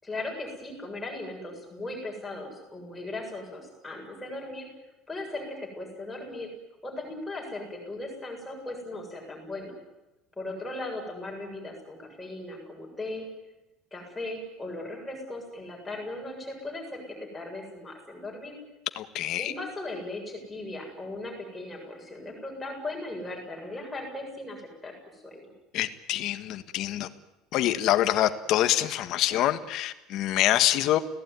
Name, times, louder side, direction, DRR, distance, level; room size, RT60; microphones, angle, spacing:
voice 1, 0.0-4.7 5.1-6.5 6.8-9.7 10.4-13.3 13.9-17.0 17.3-18.5 19.4-25.4, left 2 dB, 5° left, -1 dB, 7.1 m, -38 dB
voice 2, 18.9-19.5 25.7-27.1 27.5-31.0, left 13 dB, 45° left, 10 dB, 1.5 m, -25 dB
29.5 x 17.5 x 9.6 m, 1.0 s
cardioid pair, 175°, 0 cm